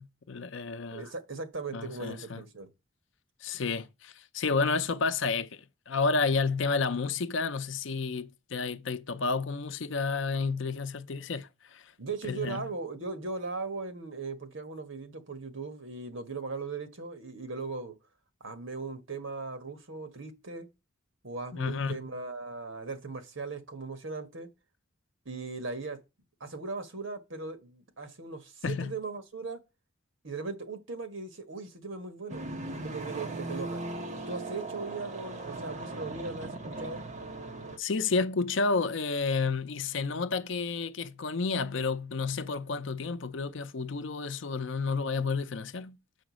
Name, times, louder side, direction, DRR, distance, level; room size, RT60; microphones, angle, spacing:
voice 1, 0.0-1.1 1.7-2.4 3.4-11.9 12.3-12.7 21.5-22.0 28.6-28.9 37.8-46.0, left 4 dB, 65° left, 0.6 m, -31 dB
voice 2, 0.9-2.7 12.0-18.0 18.4-20.7 21.2-24.5 25.2-26.0 26.4-29.6 30.2-33.8 34.1-37.0, right 4 dB, 70° right, 1.4 m, -38 dB
sound 1, 32.3-37.8, right 2 dB, 35° right, 1.3 m, -38 dB
7.1 x 5.1 x 6.2 m
head